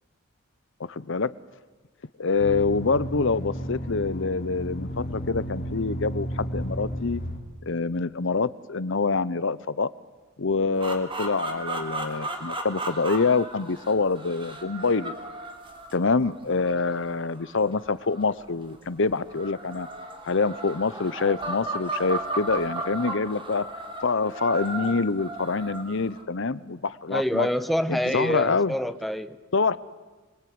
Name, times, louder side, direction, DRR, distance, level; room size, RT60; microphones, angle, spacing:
voice 1, 0.8-1.3 2.2-7.2 7.6-9.9 10.4-15.1 15.9-19.9 20.2-23.6 24.0-27.5 27.9-28.7 29.5-29.8, left 4 dB, 60° left, 17 dB, 0.8 m, -26 dB
sound 1, 2.4-7.4, equal, 45° left, 3.7 m, -33 dB
sound 2, 10.7-18.5 19.2-26.2, right 2 dB, 25° right, 3.4 m, -35 dB
voice 2, 27.1-29.4, equal, ahead, 10 dB, 1.0 m, -26 dB
27.5 x 21.5 x 9.6 m, 1.3 s
head